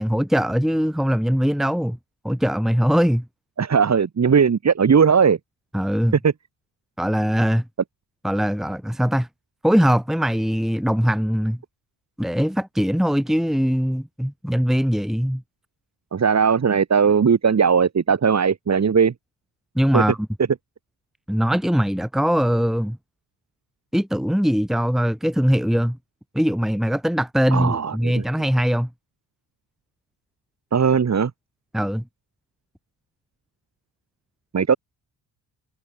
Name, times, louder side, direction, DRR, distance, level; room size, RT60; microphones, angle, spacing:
voice 1, 0.0-2.0 2.2-3.3 5.7-6.2 7.0-7.6 8.2-9.3 9.6-11.6 12.2-15.4 19.8-20.2 21.3-23.0 23.9-26.0 26.3-28.9 31.7-32.0, equal, ahead, 1.8 m, -21 dB
voice 2, 3.6-5.4 6.2-6.3 16.1-19.1 19.9-20.0 27.5-28.2 30.7-31.3 34.5-34.8, right 6 dB, 40° right, 2.0 m, -18 dB
supercardioid pair, 65°, 43 cm